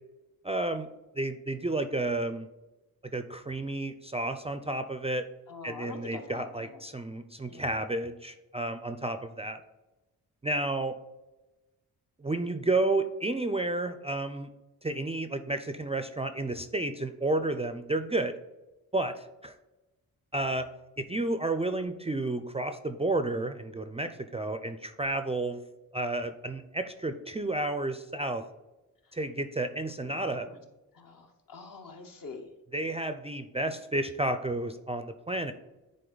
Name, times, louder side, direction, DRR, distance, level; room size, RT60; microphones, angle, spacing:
voice 1, 0.4-0.9 1.2-2.5 3.1-5.2 5.6-9.6 10.4-10.9 12.2-14.5 14.8-18.3 18.9-19.6 20.3-20.7 21.0-25.6 25.9-28.4 29.1-30.5 32.7-35.5, right 2 dB, 15° right, 9 dB, 0.3 m, -31 dB
voice 2, 5.5-6.8 7.4-7.6 30.0-30.6 30.9-32.4, left 4 dB, 60° left, 4 dB, 1.2 m, -45 dB
10.0 x 4.1 x 3.9 m, 1.0 s
wide cardioid pair, 110°, 37 cm